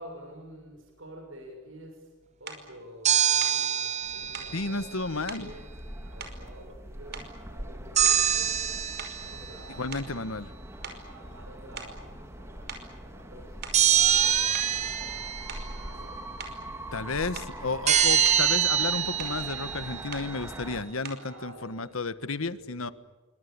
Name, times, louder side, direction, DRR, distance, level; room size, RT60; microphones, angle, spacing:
voice 1, 0.0-5.7 6.0-8.6 9.2-10.4 10.8-16.2 17.6-18.2 21.0-21.9 22.3-22.9, right 1 dB, 70° right, 3 dB, 6.6 m, -49 dB
sound 1, 2.5-2.7 3.4-3.6 4.3-4.6 5.3-5.5 6.2-6.8 7.1-7.5 8.0-8.4 9.0-10.5 10.8-11.1 11.8-12.0 12.7-12.9 13.4-13.9 14.5-14.8 15.5-15.7 16.4-16.6 17.3-17.6 18.0-18.5 19.2-19.4 20.1-20.3 21.0-21.3, right 5 dB, 50° right, 5.2 m, -43 dB
sound 2, 3.0-4.8 8.0-9.4 13.7-15.6 17.9-20.1, right 9 dB, 35° right, 0.9 m, -24 dB
sound 3, 4.0-20.8, right 1 dB, 15° right, 2.5 m, -42 dB
voice 2, 4.5-5.5 9.8-10.5 16.9-22.9, left 3 dB, 90° left, 13 dB, 1.5 m, -32 dB
29.0 x 25.0 x 7.1 m, 1.3 s
head